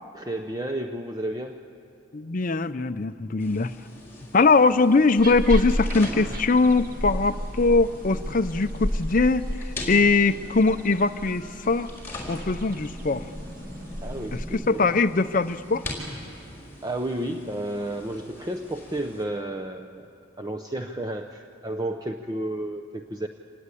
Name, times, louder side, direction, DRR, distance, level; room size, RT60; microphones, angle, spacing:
voice 1, 0.1-1.6 14.0-14.9 16.8-20.1 20.4-23.3, right 1 dB, 20° right, 5 dB, 0.6 m, -32 dB
voice 2, 2.1-3.7 4.3-9.5 9.9-11.9 12.3-13.3 14.3-15.8, left 3 dB, 40° left, 10 dB, 0.5 m, -21 dB
sound 1, 3.4-19.2, left 1 dB, 10° left, 4.4 m, -41 dB
sound 2, 5.2-14.4, equal, 45° right, 1.7 m, -33 dB
26.0 x 18.0 x 9.8 m, 2.7 s
head